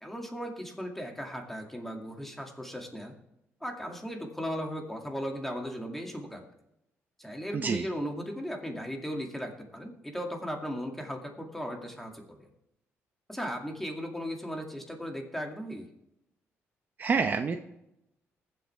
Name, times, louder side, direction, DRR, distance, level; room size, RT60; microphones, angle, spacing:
voice 1, 0.0-3.1 3.6-6.4 7.2-12.5 13.3-15.9, equal, 5° left, 2 dB, 2.2 m, -37 dB
voice 2, 7.5-7.9 17.0-17.6, right 5 dB, 40° right, 7 dB, 0.7 m, -27 dB
21.0 x 7.9 x 3.4 m, 0.84 s
cardioid pair, 110°, 5 cm